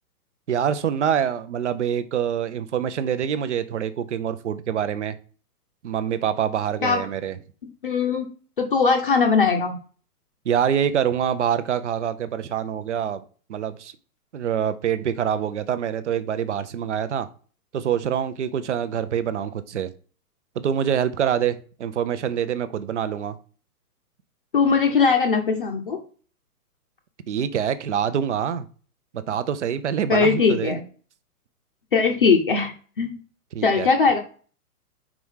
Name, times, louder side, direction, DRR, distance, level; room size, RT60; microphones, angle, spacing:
voice 1, 0.5-5.2 5.8-7.3 10.4-13.2 13.5-13.9 14.3-17.3 17.7-19.9 20.6-23.4 27.3-28.7 29.1-30.8 33.5-33.9, right 8 dB, 50° right, 13 dB, 0.7 m, -25 dB
voice 2, 7.8-8.3 8.6-9.8 24.5-26.0 30.1-30.8 31.9-32.7 33.0-33.2 33.6-34.2, left 5 dB, 35° left, 2 dB, 0.7 m, -20 dB
5.0 x 4.7 x 5.5 m, 0.41 s
hypercardioid pair, 175°, 46 cm